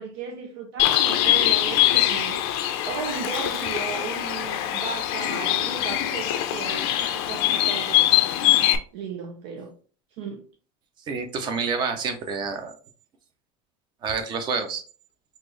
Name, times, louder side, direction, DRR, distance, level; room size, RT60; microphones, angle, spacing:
voice 1, 0.0-2.4 2.9-8.1 8.9-9.7 10.2-10.4, right 6 dB, 75° right, 0.6 m, -35 dB
Bird, 0.8-8.8, left 13 dB, 70° left, 0.5 m, -23 dB
voice 2, 11.1-12.8 14.0-14.8, right 5 dB, 35° right, 0.7 m, -28 dB
4.2 x 2.5 x 3.1 m
supercardioid pair, 140°, 13 cm